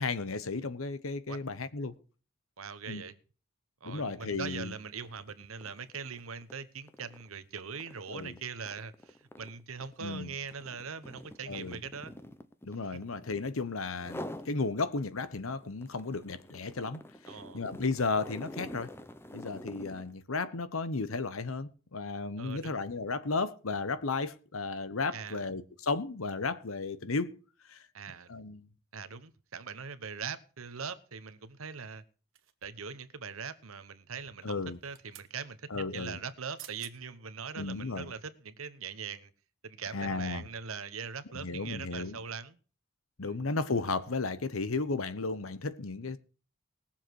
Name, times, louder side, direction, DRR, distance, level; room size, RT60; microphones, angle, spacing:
voice 1, 0.0-1.9 2.9-3.0 3.8-4.7 8.1-8.3 10.0-10.3 11.5-11.8 12.6-17.0 17.5-18.9 19.3-27.3 27.7-27.8 28.3-28.7 34.4-34.8 35.7-36.2 37.6-38.1 39.9-40.5 41.3-42.2 43.2-46.2, left 3 dB, 85° left, 1.0 m, -34 dB
voice 2, 2.6-3.1 3.8-12.1 12.9-13.0 17.3-17.6 22.4-22.8 25.1-25.4 27.9-28.3 28.9-32.0 32.6-39.3 39.6-42.6 43.2-43.4, right 6 dB, 90° right, 1.0 m, -41 dB
sound 1, 4.5-4.7 5.0-13.5 13.9-14.5 15.0-20.1, left 1 dB, 10° left, 0.7 m, -47 dB
sound 2, 32.3-32.9 34.6-35.3 36.3-36.4 36.6-37.0 37.5-37.6, right 13 dB, 65° right, 1.1 m, -51 dB
19.5 x 7.3 x 4.7 m
head